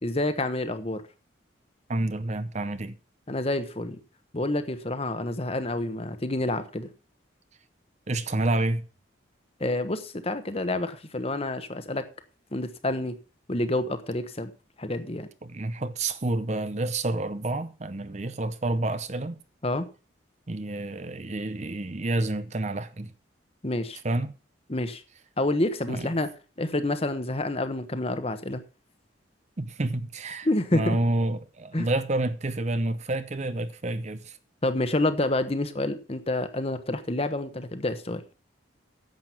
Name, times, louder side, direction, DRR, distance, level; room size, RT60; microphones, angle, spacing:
voice 1, 0.0-1.0 3.3-4.0 4.3-6.9 9.6-12.0 12.5-13.1 13.5-14.5 14.8-15.3 19.6-19.9 23.6-24.0 24.7-25.0 25.4-26.3 26.6-28.6 30.4-31.0 31.7-31.9 34.6-38.2, left 1 dB, 30° left, 1.1 m, -28 dB
voice 2, 1.9-3.0 8.1-8.8 15.4-19.4 20.5-23.1 24.0-24.3 25.9-26.1 29.6-34.4, right 2 dB, 35° right, 0.7 m, -29 dB
10.5 x 7.5 x 6.0 m
head